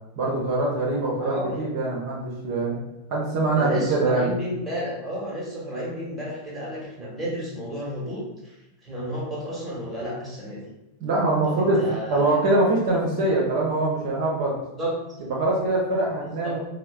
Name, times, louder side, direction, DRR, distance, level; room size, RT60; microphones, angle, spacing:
voice 1, 0.2-2.7 3.1-4.3 11.0-11.8 12.1-14.6 15.2-16.6, right 2 dB, 45° right, -4 dB, 0.6 m, -23 dB
voice 2, 1.2-1.6 3.5-8.6 8.8-10.6 11.5-12.4 14.8-15.0 16.4-16.6, equal, 5° right, -5 dB, 1.1 m, -31 dB
4.1 x 2.0 x 2.3 m, 0.96 s
figure-of-eight pair, 90°, 0 cm